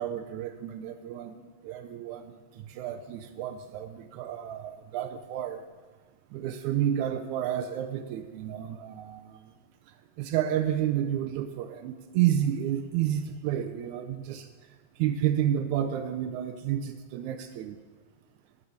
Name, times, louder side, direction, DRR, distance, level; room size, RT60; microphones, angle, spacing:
voice 1, 0.0-5.6 6.3-9.4 10.2-14.5 15.0-17.8, right 10 dB, 80° right, 7 dB, 1.8 m, -30 dB
11.0 x 5.6 x 6.4 m, 1.5 s
omnidirectional pair, 3.8 m